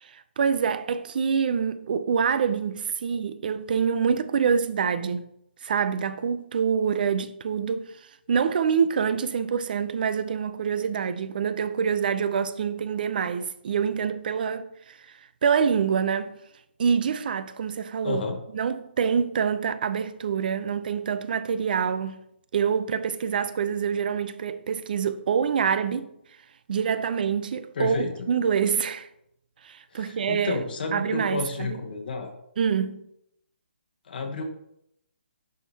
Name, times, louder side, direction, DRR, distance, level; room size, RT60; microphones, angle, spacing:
voice 1, 0.0-5.3 5.6-7.9 8.3-15.0 15.4-16.4 16.8-18.2 18.5-22.2 22.5-26.1 26.7-29.1 29.6-30.6 30.9-31.8 32.6-33.0, right 6 dB, 50° right, 0.5 m, -26 dB
voice 2, 18.0-18.4 27.7-28.3 29.9-32.3 34.1-34.4, left 4 dB, 55° left, 1.0 m, -31 dB
10.5 x 3.6 x 2.8 m
hypercardioid pair, 160°, 6 cm